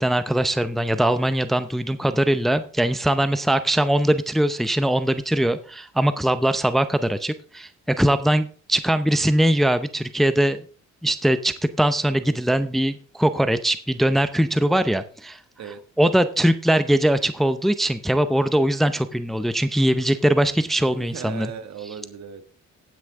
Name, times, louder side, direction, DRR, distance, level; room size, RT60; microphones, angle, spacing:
voice 1, 0.0-10.6 11.0-15.4 16.0-21.5, right 1 dB, ahead, 12 dB, 0.7 m, -21 dB
voice 2, 21.0-22.5, right 7 dB, 60° right, 9 dB, 1.5 m, -37 dB
17.0 x 6.3 x 3.6 m, 0.40 s
cardioid pair, 90°, 30 cm